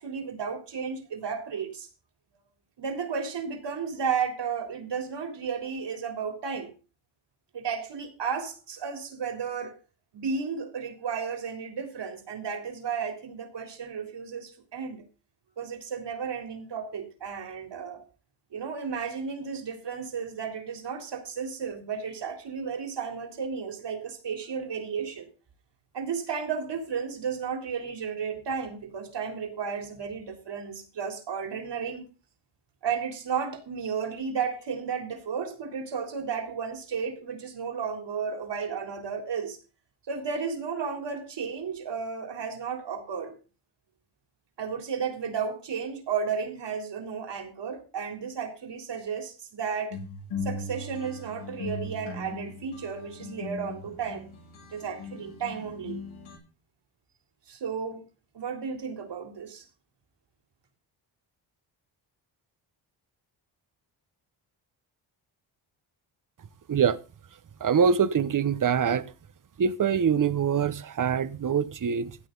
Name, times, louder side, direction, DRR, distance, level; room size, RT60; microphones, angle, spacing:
voice 1, 0.0-1.9 2.8-6.7 7.5-9.8 10.1-15.0 15.6-18.0 18.5-25.3 25.9-32.0 32.8-39.6 40.1-43.3 44.6-50.0 50.4-54.3 54.7-56.0 57.5-58.0 58.3-59.6, right 6 dB, 60° right, 3.8 m, -33 dB
sound 1, 49.9-56.4, left 3 dB, 90° left, 7.9 m, -39 dB
voice 2, 66.7-67.0 67.6-69.0 69.6-72.2, right 7 dB, 40° right, 1.1 m, -24 dB
16.0 x 9.2 x 4.0 m
cardioid pair, 70°, 47 cm